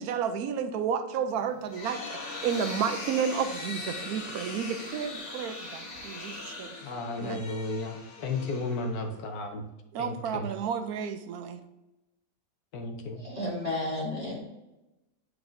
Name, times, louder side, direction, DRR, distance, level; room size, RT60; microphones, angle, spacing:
voice 1, 0.0-6.7 7.1-7.4 9.9-11.6, right 7 dB, 70° right, 9 dB, 1.0 m, -31 dB
sound 1, 1.4-9.2, left 3 dB, 50° left, 1.2 m, -40 dB
voice 2, 6.8-9.6 10.0-10.5 12.7-13.2, left 3 dB, 65° left, 4 dB, 1.3 m, -34 dB
voice 3, 13.1-14.4, left 1 dB, 20° left, -6 dB, 1.9 m, -32 dB
8.3 x 4.7 x 2.5 m, 0.97 s
omnidirectional pair, 1.9 m